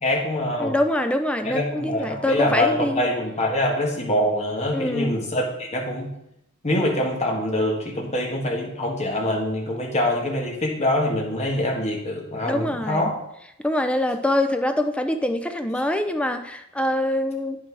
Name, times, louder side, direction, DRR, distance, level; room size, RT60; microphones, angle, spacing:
voice 1, 0.0-0.7 1.5-6.1 6.6-13.1, left 1 dB, 30° left, -1 dB, 1.8 m, -24 dB
voice 2, 0.6-3.0 4.7-5.2 12.4-13.1 13.6-17.6, left 1 dB, 5° left, 7 dB, 0.5 m, -24 dB
9.0 x 5.9 x 4.8 m, 0.79 s
head